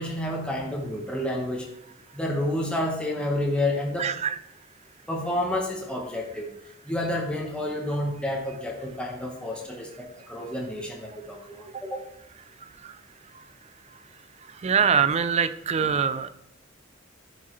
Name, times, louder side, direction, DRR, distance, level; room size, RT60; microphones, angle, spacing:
voice 1, 0.0-1.7 2.1-4.1 5.1-6.5 6.9-12.0, left 1 dB, 5° left, -1 dB, 1.0 m, -29 dB
voice 2, 4.0-4.4 14.6-16.3, right 7 dB, 30° right, 13 dB, 0.3 m, -23 dB
12.0 x 4.8 x 3.0 m, 0.78 s
head